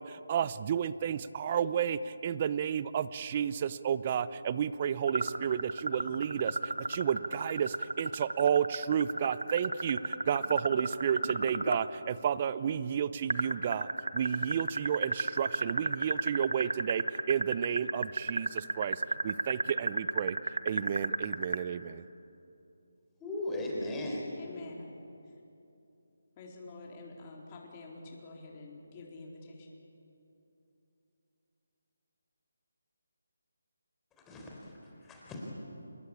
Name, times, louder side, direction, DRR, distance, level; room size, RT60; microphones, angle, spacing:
voice 1, 0.0-22.0, right 8 dB, 30° right, 16 dB, 0.8 m, -32 dB
sound 1, 5.1-11.8 13.3-21.6, right 2 dB, 90° right, 1.5 m, -31 dB
voice 2, 23.2-24.3 34.2-34.8 35.0-35.5, left 1 dB, 10° left, -2 dB, 4.3 m, -37 dB
voice 3, 24.4-24.9 26.4-29.7, left 3 dB, 25° left, -1 dB, 4.1 m, -47 dB
27.0 x 22.0 x 8.6 m, 2.8 s
figure-of-eight pair, 160°, 0 cm